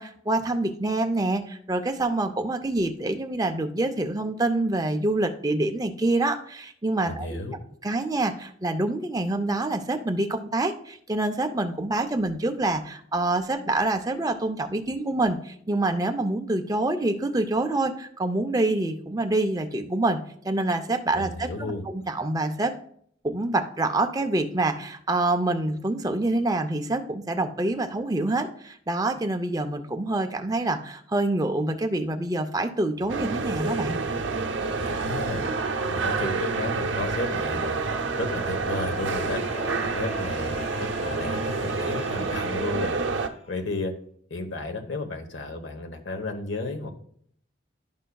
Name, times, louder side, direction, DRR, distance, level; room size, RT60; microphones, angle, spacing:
voice 1, 0.0-7.4 7.8-22.7 23.2-34.0, right 2 dB, 20° right, 6 dB, 0.5 m, -26 dB
voice 2, 7.0-7.6 21.1-21.8 34.8-35.4 35.9-37.8 38.2-39.4 39.9-42.9 43.5-43.9 44.3-46.9, left 2 dB, 75° left, 6 dB, 1.0 m, -33 dB
sound 1, 33.1-43.3, right 4 dB, 80° right, 0.7 m, -28 dB
sound 2, 36.8-43.7, left 3 dB, 30° left, 0.5 m, -43 dB
11.5 x 5.5 x 2.3 m, 0.62 s
head